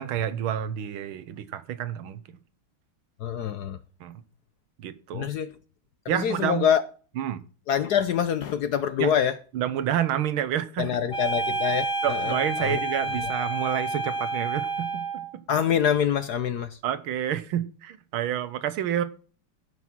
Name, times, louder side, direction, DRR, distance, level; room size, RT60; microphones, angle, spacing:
voice 1, 0.0-2.2 4.0-4.2 4.8-5.3 6.1-6.6 7.2-7.4 9.0-9.1 9.5-10.9 12.0-15.4 16.8-19.0, right 10 dB, 80° right, 1.7 m, -29 dB
voice 2, 3.2-3.8 5.1-5.5 6.0-6.8 7.7-9.4 10.8-12.8 15.5-16.8, left 8 dB, 65° left, 1.0 m, -25 dB
sound 1, 11.1-15.3, right 2 dB, 25° left, 2.2 m, -29 dB
15.5 x 6.2 x 6.0 m
omnidirectional pair, 2.3 m